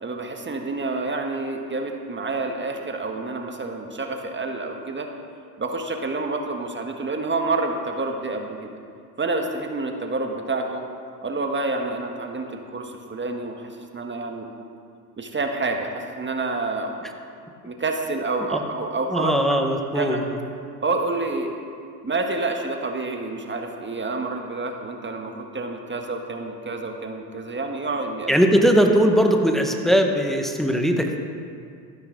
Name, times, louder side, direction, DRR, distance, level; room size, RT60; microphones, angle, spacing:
voice 1, 0.0-5.1 5.6-8.7 9.2-10.8 11.2-14.5 15.2-16.9 17.6-19.3 20.0-20.2 20.8-21.5 22.0-28.3, right 3 dB, 20° right, 3 dB, 1.7 m, -28 dB
voice 2, 19.1-20.2 28.3-31.2, equal, ahead, 3 dB, 1.5 m, -19 dB
14.0 x 12.5 x 4.0 m, 2.3 s
hypercardioid pair, 70°, 50 cm